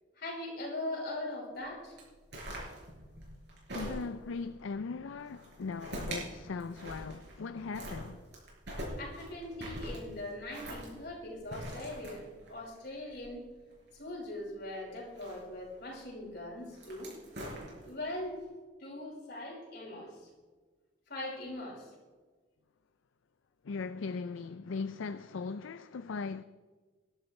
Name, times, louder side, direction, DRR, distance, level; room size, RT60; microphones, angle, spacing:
voice 1, 0.2-2.0 9.0-13.4 13.9-17.1 17.8-18.4 18.8-20.3 21.1-21.9, left 1 dB, 50° left, 4.9 m, -41 dB
sound 1, 2.0-4.4 5.2-6.3 6.6-7.5 7.7-13.9 15.0-15.8 16.6-18.1, right 1 dB, 55° right, 5.3 m, -43 dB
voice 2, 3.7-8.2 23.6-26.4, left 4 dB, 75° left, 0.4 m, -39 dB
20.5 x 12.0 x 3.2 m
head